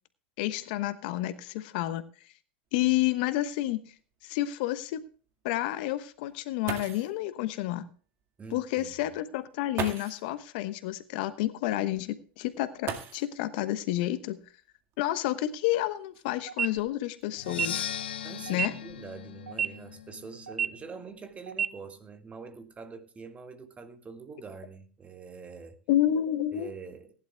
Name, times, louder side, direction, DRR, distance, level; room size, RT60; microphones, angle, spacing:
voice 1, 0.4-2.0 2.7-3.8 4.2-5.1 5.4-7.9 8.5-14.4 15.0-17.9 18.5-18.7 25.9-26.7, left 14 dB, 65° left, 1.1 m, -30 dB
sound 1, 2.8-2.9 3.2-3.3 4.0-4.1 6.3-6.4 6.7-7.2 8.5-8.6 9.7-10.3 12.8-13.6 14.9-15.0 15.8-17.2 17.9-18.3 18.6-19.0, right 7 dB, 45° right, 2.0 m, -39 dB
voice 2, 8.4-8.9 18.2-25.8 26.5-27.1, right 5 dB, 25° right, 1.9 m, -45 dB
sound 2, 16.5-16.7 17.5-17.7 18.5-18.7 19.5-19.7 20.5-20.7 21.5-21.7, right 7 dB, 90° right, 0.6 m, -28 dB
Percussion, 17.4-21.2, left 10 dB, 80° left, 0.7 m, -39 dB
19.0 x 11.0 x 2.3 m
hypercardioid pair, 85°, 6 cm